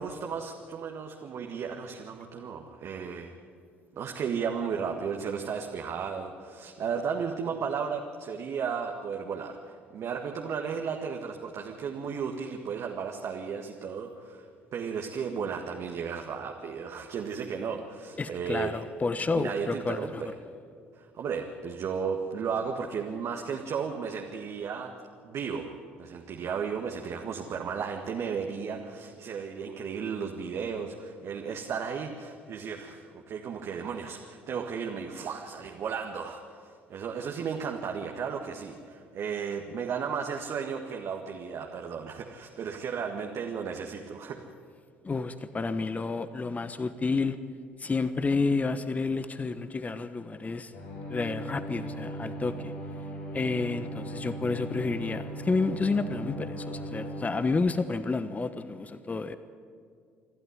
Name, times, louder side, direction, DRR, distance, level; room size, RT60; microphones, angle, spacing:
voice 1, 0.0-3.3 4.0-14.5 14.7-18.8 19.3-20.3 21.0-24.9 25.2-25.7 26.0-44.4, right 6 dB, 50° right, 2 dB, 1.7 m, -34 dB
voice 2, 18.2-20.3 45.0-47.4 47.8-50.7 51.1-52.7 53.3-59.4, left 3 dB, 25° left, 12 dB, 1.1 m, -30 dB
sound 1, 50.7-57.2, right 1 dB, 65° left, 5.7 m, -38 dB
28.0 x 12.0 x 9.8 m, 2.3 s
hypercardioid pair, 55°, 6 cm